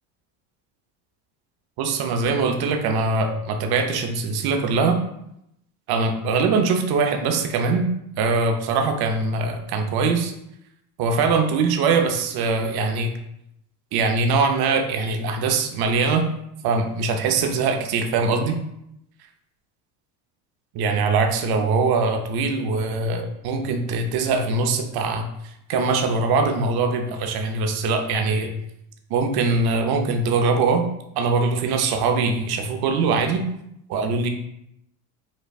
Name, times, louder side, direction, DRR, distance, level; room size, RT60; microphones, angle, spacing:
voice 1, 1.8-5.0 5.9-7.9 8.2-10.3 11.0-13.2 13.9-16.3 16.6-18.6 20.7-25.3 25.7-28.5 29.1-30.8 31.2-33.4 33.9-34.3, right 4 dB, 55° right, 5 dB, 0.7 m, -22 dB
5.4 x 2.4 x 2.4 m, 0.79 s
supercardioid pair, 95°, 46 cm